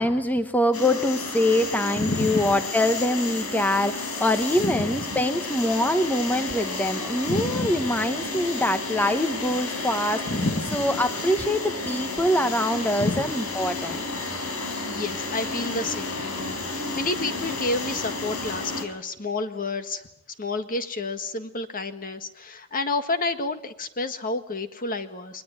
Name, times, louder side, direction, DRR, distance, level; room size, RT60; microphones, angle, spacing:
voice 1, 0.0-10.3 10.7-14.0, left 1 dB, 10° left, 8 dB, 1.0 m, -24 dB
sound 1, 0.7-18.8, left 3 dB, 80° left, 4.5 m, -32 dB
voice 2, 2.0-2.5 4.6-5.1 7.3-7.8 10.3-10.9 13.0-13.2 14.9-20.1 20.4-25.4, left 2 dB, 40° left, 9 dB, 1.7 m, -30 dB
22.5 x 20.0 x 9.3 m, 0.77 s
head